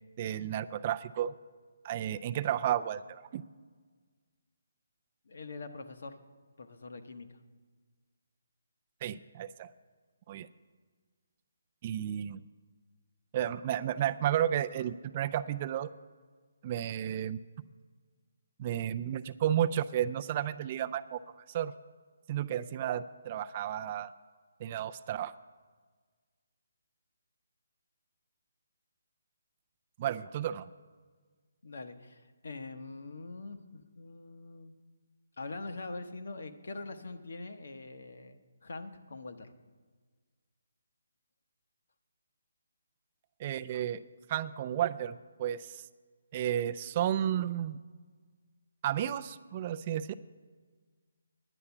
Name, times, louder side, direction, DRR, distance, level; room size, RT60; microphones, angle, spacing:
voice 1, 0.2-1.3 1.8-3.4 9.0-9.7 10.3-10.5 11.8-12.4 13.3-15.9 16.6-17.4 18.6-21.2 21.5-21.7 22.3-24.1 24.6-25.3 30.0-30.7 43.4-44.0 44.3-45.8 46.3-47.8 48.8-50.1, right 11 dB, 30° right, 11 dB, 0.3 m, -32 dB
voice 2, 5.3-6.2 6.6-7.4 31.6-34.7 35.4-39.5, left 3 dB, 65° left, 7 dB, 1.0 m, -43 dB
9.9 x 8.6 x 7.0 m, 1.5 s
hypercardioid pair, 160°, 0 cm